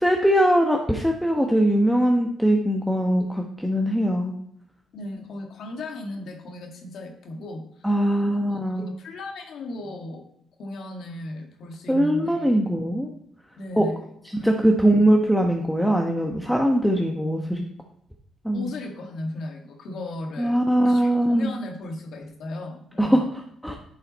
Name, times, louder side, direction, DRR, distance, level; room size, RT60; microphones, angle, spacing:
voice 1, 0.0-4.3 7.8-8.9 11.9-13.1 13.8-13.9 14.4-17.6 18.4-18.7 20.4-21.5 23.0-23.8, right 1 dB, ahead, 2 dB, 1.0 m, -21 dB
voice 2, 4.9-8.0 8.3-10.2 10.6-12.6 13.6-14.1 14.4-14.6 18.5-23.2, left 1 dB, 70° left, 3 dB, 1.8 m, -36 dB
10.0 x 5.6 x 4.1 m, 0.72 s
cardioid pair, 90°, 0 cm